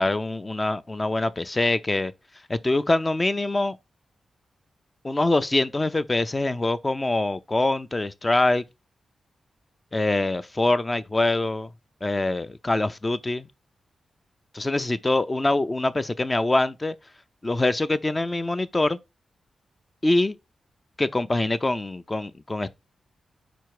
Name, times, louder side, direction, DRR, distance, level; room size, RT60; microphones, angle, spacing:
voice 1, 0.0-2.1 2.5-3.8 5.0-8.6 9.9-11.7 12.0-13.5 14.5-16.9 17.4-19.0 20.0-20.3 21.0-22.7, left 2 dB, 25° left, 0.6 m, -24 dB
5.1 x 4.5 x 4.8 m
cardioid pair, 80°, 0 cm